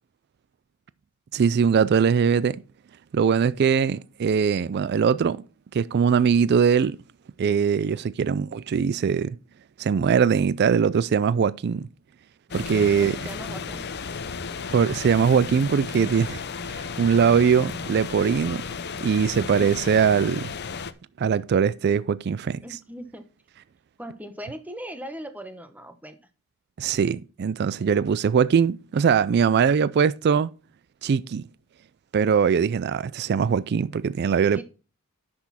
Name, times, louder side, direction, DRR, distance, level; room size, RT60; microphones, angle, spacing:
voice 1, 1.3-2.6 3.1-5.4 5.7-7.0 7.4-9.4 9.8-11.9 12.5-13.2 14.7-18.6 19.0-20.5 21.2-22.6 26.8-30.5 31.0-31.5 32.1-34.6, right 6 dB, 50° right, 0.3 m, -21 dB
sound 1, 12.5-20.9, left 5 dB, 50° left, 0.7 m, -34 dB
voice 2, 12.9-13.8 19.6-19.7 22.6-23.2 24.0-26.2 34.5-34.6, equal, 5° right, 1.0 m, -39 dB
10.5 x 6.2 x 4.2 m
head